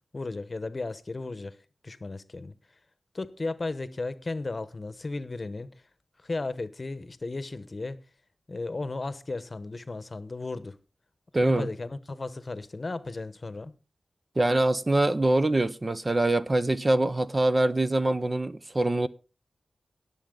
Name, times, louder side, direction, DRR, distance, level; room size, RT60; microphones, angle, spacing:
voice 1, 0.1-2.5 3.1-5.7 6.2-8.0 8.5-10.8 11.4-13.7, left 3 dB, 40° left, 1.0 m, -35 dB
voice 2, 11.3-11.7 14.4-19.1, right 2 dB, 30° right, 0.7 m, -24 dB
19.5 x 7.1 x 3.8 m
wide cardioid pair, 80°, 0 cm